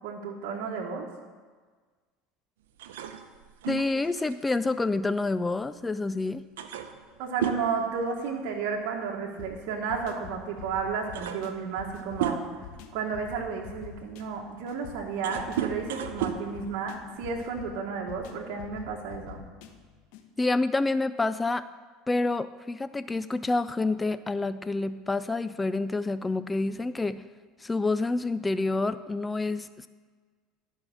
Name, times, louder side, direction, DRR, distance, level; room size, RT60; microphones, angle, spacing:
voice 1, 0.0-1.1 7.2-12.6 12.9-19.4, right 5 dB, 65° right, -1 dB, 1.3 m, -32 dB
sound 1, 2.8-5.8 6.1-6.2 6.6-8.7 9.0-9.3 10.3-10.4 10.8-12.8 13.4-17.5, right 9 dB, 90° right, 0.7 m, -35 dB
voice 2, 3.7-6.4 20.4-21.6 22.1-27.2 27.6-29.9, left 3 dB, 15° left, 14 dB, 0.3 m, -28 dB
sound 2, 9.4-20.3, left 9 dB, 70° left, 1.0 m, -46 dB
12.5 x 5.4 x 6.2 m, 1.5 s
supercardioid pair, 100°, 0 cm